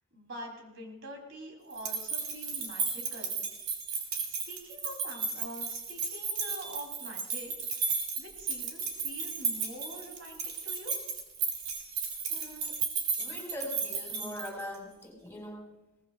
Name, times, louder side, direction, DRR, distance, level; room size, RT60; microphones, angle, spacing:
voice 1, 0.1-3.5 4.3-7.5 7.8-11.0, equal, 60° right, 0 dB, 3.5 m, -45 dB
sound 1, 1.7-14.8, right 5 dB, 75° right, 3.9 m, -34 dB
voice 2, 12.3-12.7 13.2-15.6, left 1 dB, 10° left, -2 dB, 4.7 m, -41 dB
22.5 x 19.0 x 2.5 m, 1.0 s
head